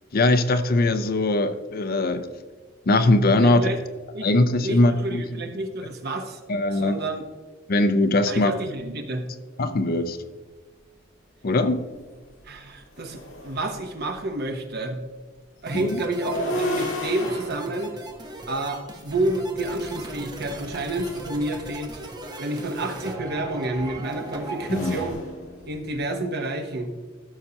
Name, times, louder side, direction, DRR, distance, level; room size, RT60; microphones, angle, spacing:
voice 1, 0.1-2.3 2.9-3.7 4.2-5.2 6.5-7.0 7.7-8.5 9.6-10.2 11.4-11.8 15.7-16.0 24.7-25.0, left 2 dB, 50° left, 10 dB, 0.5 m, -21 dB
voice 2, 3.4-3.8 4.1-4.3 4.6-6.4 6.7-7.3 8.2-9.3 12.5-15.0 15.6-18.0 18.5-22.0 22.4-25.2 25.7-26.9, right 2 dB, 55° right, 5 dB, 1.0 m, -29 dB
sound 1, 11.7-11.8 12.2-14.2 16.0-19.3 20.6-21.3 22.7-26.2, left 1 dB, 75° left, 1.9 m, -34 dB
sound 2, 15.7-25.1, right 2 dB, 20° right, 0.9 m, -38 dB
13.5 x 6.5 x 2.9 m, 1.4 s
head